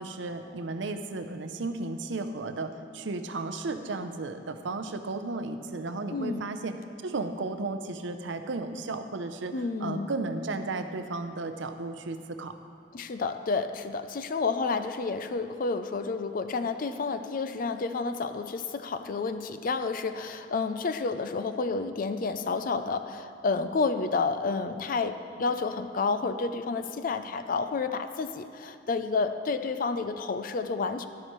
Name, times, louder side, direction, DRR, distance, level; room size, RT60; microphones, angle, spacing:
voice 1, 0.0-6.7 7.0-9.5 9.8-12.5, right 3 dB, 65° right, 8 dB, 0.6 m, -34 dB
voice 2, 6.1-6.4 9.5-10.1 12.9-31.1, left 4 dB, 45° left, 10 dB, 0.4 m, -30 dB
11.5 x 11.0 x 3.1 m, 2.5 s
head